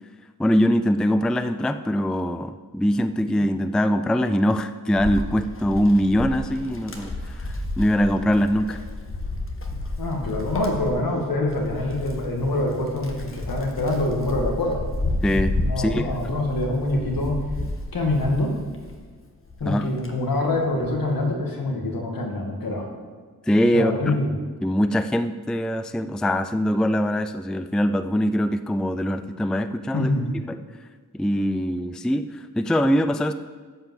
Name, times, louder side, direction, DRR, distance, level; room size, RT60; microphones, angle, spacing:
voice 1, 0.4-7.1 7.4-8.8 15.2-16.1 19.6-19.9 23.5-24.2 24.6-30.1 30.5-30.6 31.1-33.3, equal, ahead, 11 dB, 0.4 m, -22 dB
Wind, 5.0-19.1 19.5-21.0, left 2 dB, 35° left, 1.6 m, -31 dB
voice 2, 10.0-14.8 15.7-17.4 17.9-18.6 19.6-22.9 23.7-24.3 29.9-30.3, left 2 dB, 70° left, 1 dB, 2.2 m, -25 dB
11.5 x 5.6 x 7.7 m, 1.5 s
wide cardioid pair, 80°, 36 cm